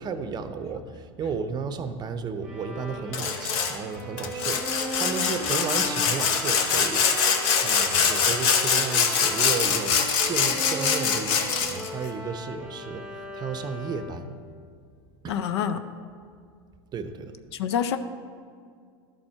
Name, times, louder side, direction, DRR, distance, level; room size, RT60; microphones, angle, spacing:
voice 1, 0.0-7.3 7.6-14.3 15.2-15.4 16.9-17.3, right 5 dB, 30° right, 10 dB, 0.6 m, -33 dB
Bowed string instrument, 2.4-14.3, equal, 5° right, 1.4 m, -38 dB
Sawing, 3.1-3.7 4.2-11.9, left 6 dB, 60° left, 0.9 m, -24 dB
voice 2, 15.3-15.8 17.5-18.0, left 8 dB, 80° left, 10 dB, 0.4 m, -27 dB
12.0 x 4.3 x 4.3 m, 2.2 s
hypercardioid pair, 100°, 14 cm